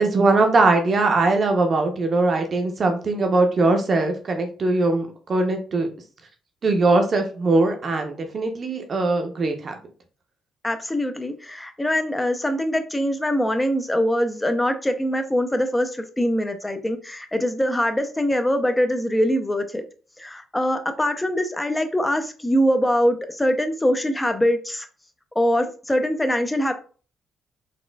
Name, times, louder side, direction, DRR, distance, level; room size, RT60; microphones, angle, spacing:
voice 1, 0.0-5.9 6.6-9.8, right 3 dB, 45° right, 5 dB, 0.7 m, -21 dB
voice 2, 10.6-19.8 20.2-24.9 25.4-26.7, equal, 10° left, 8 dB, 0.5 m, -23 dB
4.1 x 2.4 x 2.3 m, 0.39 s
cardioid pair, 90°, 0 cm